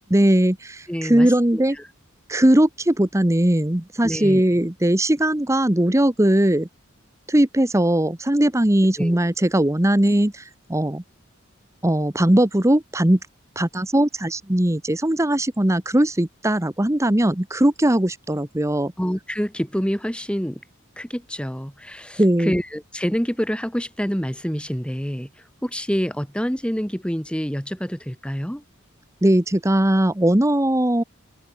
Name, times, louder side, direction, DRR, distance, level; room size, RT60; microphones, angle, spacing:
voice 1, 0.1-1.8 2.3-6.7 7.3-11.0 11.8-13.2 13.6-18.9 22.2-22.6 29.2-31.0, right 1 dB, 15° right, 1.1 m, -19 dB
voice 2, 0.9-1.6 4.0-4.4 9.0-9.2 19.0-20.6 21.0-25.3 25.6-28.6, equal, 5° left, 3.3 m, -27 dB
head